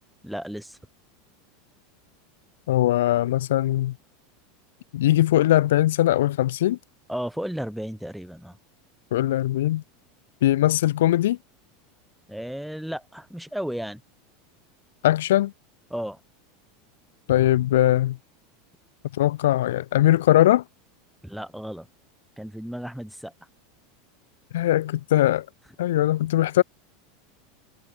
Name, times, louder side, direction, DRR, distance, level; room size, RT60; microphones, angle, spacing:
voice 1, 0.2-0.8 7.1-8.6 12.3-14.0 15.9-16.2 21.2-21.9 22.4-23.3, equal, ahead, 6.9 m, -33 dB
voice 2, 2.7-3.9 4.9-6.8 9.1-9.8 10.4-11.4 15.0-15.5 17.3-18.2 19.1-20.6 24.5-25.5 25.8-26.6, left 14 dB, 75° left, 0.5 m, -20 dB
hypercardioid pair, 95°, 0 cm